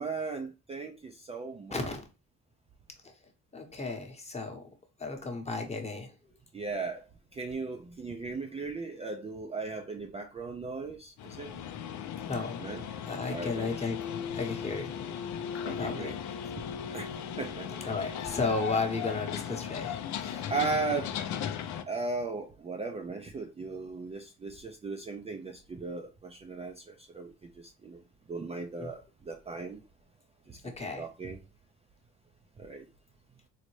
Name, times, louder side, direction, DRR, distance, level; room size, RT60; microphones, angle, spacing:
voice 1, 0.0-1.9 6.5-7.1 7.3-11.5 12.6-12.8 13.3-13.7 15.6-16.1 16.9-17.7 20.5-21.2 21.9-28.0 28.3-29.8 30.5-31.4 32.6-32.9, right 4 dB, 20° right, 3 dB, 0.4 m, -37 dB
voice 2, 1.7-2.1 3.5-4.6 5.0-6.1 12.2-12.6 13.1-14.0 14.4-15.0 15.8-16.1 17.8-20.5 28.8-28.9 30.6-31.1, left 3 dB, 20° left, 4 dB, 0.9 m, -34 dB
sound 1, 11.2-21.8, left 8 dB, 70° left, 0.5 m, -37 dB
3.9 x 2.1 x 3.0 m, 0.29 s
cardioid pair, 90°, 30 cm